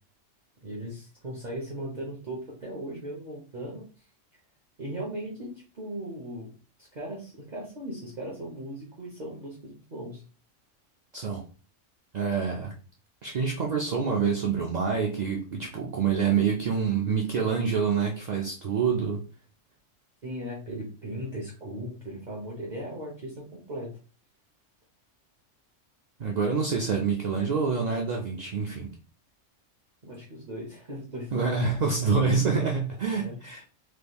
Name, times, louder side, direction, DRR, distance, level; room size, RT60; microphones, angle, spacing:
voice 1, 0.6-3.9 4.8-6.5 6.8-10.2 20.2-23.9 30.0-31.7 33.1-33.4, right 1 dB, 40° right, -4 dB, 0.8 m, -38 dB
voice 2, 12.1-12.7 13.2-19.2 26.2-28.9 31.3-33.6, right 5 dB, 65° right, 0 dB, 0.4 m, -26 dB
3.5 x 3.0 x 2.2 m, 0.36 s
omnidirectional pair, 1.3 m